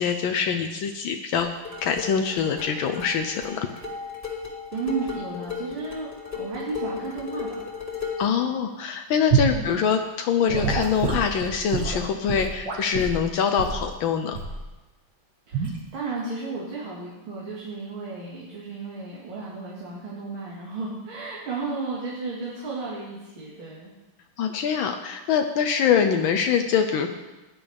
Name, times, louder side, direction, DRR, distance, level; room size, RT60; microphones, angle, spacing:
voice 1, 0.0-1.5 1.8-3.7 8.2-14.4 24.4-27.1, left 7 dB, 75° left, 5 dB, 1.5 m, -24 dB
sound 1, 1.4-8.4, left 5 dB, 25° left, 2.3 m, -35 dB
voice 2, 4.7-6.1 6.3-7.5 9.5-9.8 15.5-23.9 25.9-26.1, right 3 dB, 80° right, -6 dB, 2.8 m, -33 dB
Gurgling / Sink (filling or washing) / Liquid, 9.3-9.6 10.5-13.2 13.6-13.8 14.3-14.6 15.5-15.8, right 6 dB, 55° right, 3.0 m, -26 dB
16.0 x 10.5 x 3.4 m, 1.1 s
omnidirectional pair, 2.2 m